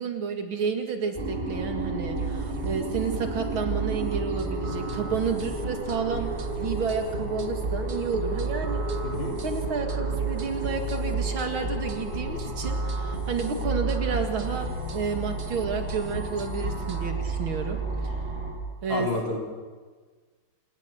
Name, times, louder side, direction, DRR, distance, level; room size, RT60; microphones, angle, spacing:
voice 1, 0.0-6.3 6.6-8.8 9.4-17.8 18.0-18.1 18.8-19.1, right 5 dB, 90° right, 5 dB, 2.9 m, -31 dB
sound 1, 1.1-18.5, right 2 dB, 25° right, 5.9 m, -32 dB
sound 2, 2.1-17.1, right 3 dB, 40° right, 1.3 m, -36 dB
voice 2, 18.9-19.4, left 2 dB, 60° left, -1 dB, 4.5 m, -28 dB
26.5 x 19.0 x 6.0 m, 1.5 s
omnidirectional pair, 2.2 m